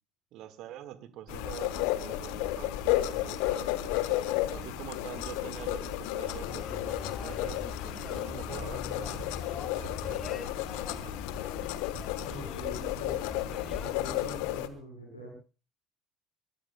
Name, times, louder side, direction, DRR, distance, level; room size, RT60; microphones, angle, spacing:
voice 1, 0.3-4.0 4.5-9.3 9.8-11.6, right 11 dB, 60° right, 11 dB, 1.6 m, -46 dB
sound 1, 1.3-14.7, left 15 dB, 65° left, 1.1 m, -33 dB
sound 2, 1.3-14.1, right 3 dB, 40° right, 4.9 m, -47 dB
sound 3, 6.3-14.0, left 6 dB, 40° left, 2.5 m, -43 dB
voice 2, 12.2-15.3, equal, 90° left, 0 dB, 4.6 m, -44 dB
24.0 x 22.5 x 2.2 m, 0.33 s
figure-of-eight pair, 55°, 0 cm